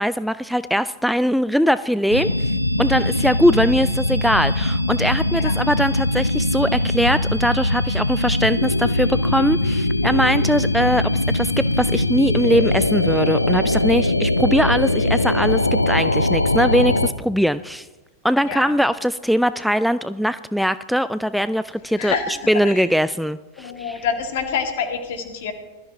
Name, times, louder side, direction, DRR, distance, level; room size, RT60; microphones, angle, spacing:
voice 1, 0.0-2.5 2.8-17.9 18.2-22.1 22.5-24.0, equal, ahead, 14 dB, 0.3 m, -21 dB
sound 1, 2.1-17.1, left 1 dB, 85° left, 0.6 m, -21 dB
voice 2, 22.0-22.4 22.6-22.8 23.6-25.5, left 6 dB, 55° left, 5 dB, 2.3 m, -27 dB
20.0 x 13.5 x 3.5 m, 1.2 s
figure-of-eight pair, 90°, 0 cm